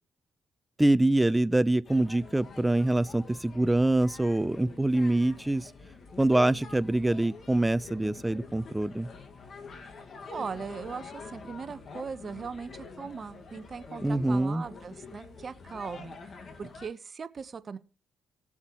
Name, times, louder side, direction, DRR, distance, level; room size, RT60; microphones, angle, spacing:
voice 1, 0.8-5.7 6.2-9.1 14.0-14.7, right 1 dB, 10° right, 0.6 m, -25 dB
sound 1, 1.8-16.9, left 4 dB, 50° left, 1.9 m, -46 dB
voice 2, 10.3-16.2 16.6-17.8, right 5 dB, 40° right, 1.0 m, -39 dB
19.0 x 7.2 x 3.1 m
cardioid pair, 90°, 0 cm